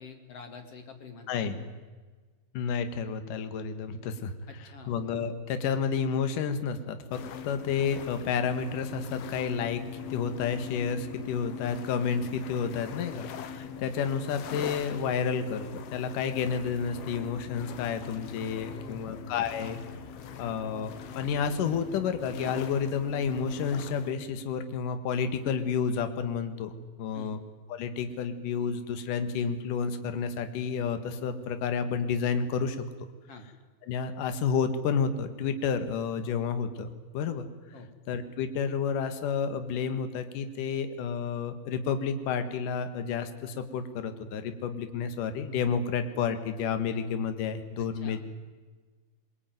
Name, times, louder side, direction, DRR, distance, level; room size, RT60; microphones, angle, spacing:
voice 1, 0.0-1.3 4.5-5.0 18.7-19.1 27.1-27.4 33.3-33.5 37.7-37.9 48.0-48.2, left 5 dB, 45° left, 6 dB, 2.9 m, -46 dB
voice 2, 2.5-4.3 4.6-19.8 20.4-26.7 27.0-27.4 27.7-32.9 33.8-37.5 38.1-48.2, left 6 dB, 60° left, 9 dB, 3.0 m, -30 dB
sound 1, 7.1-24.1, left 7 dB, 80° left, 3.3 m, -42 dB
23.0 x 22.0 x 9.3 m, 1.4 s
omnidirectional pair, 4.5 m